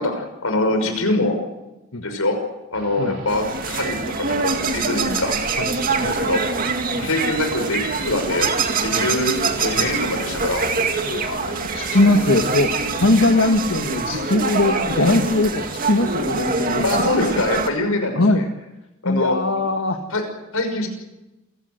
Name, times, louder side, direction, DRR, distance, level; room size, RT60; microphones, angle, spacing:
voice 1, 0.0-1.4 2.0-2.4 2.7-5.3 6.0-6.4 7.0-8.5 8.8-10.6 16.8-18.5 19.0-19.4 20.1-20.2 20.5-20.9, left 2 dB, 80° left, 6 dB, 5.9 m, -23 dB
sound 1, 2.7-13.1, right 2 dB, 70° right, 5.0 m, -38 dB
sound 2, 3.3-17.7, right 4 dB, 40° right, 2.3 m, -24 dB
voice 2, 10.7-12.7 13.0-17.1 18.2-18.4 19.0-20.0, left 2 dB, 65° left, 5 dB, 1.6 m, -20 dB
28.0 x 16.0 x 8.1 m, 1.0 s
head